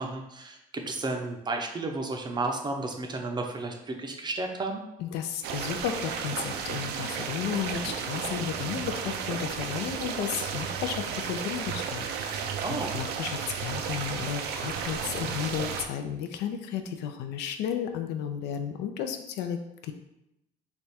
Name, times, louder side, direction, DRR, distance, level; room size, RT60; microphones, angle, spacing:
voice 1, 0.0-4.8 12.6-12.9, right 2 dB, 25° right, 3 dB, 0.5 m, -32 dB
voice 2, 5.0-19.9, left 8 dB, 85° left, 7 dB, 0.5 m, -33 dB
sound 1, 5.4-15.9, right 7 dB, 80° right, 0.4 m, -33 dB
3.4 x 2.3 x 4.1 m, 0.85 s
cardioid pair, 110°, 17 cm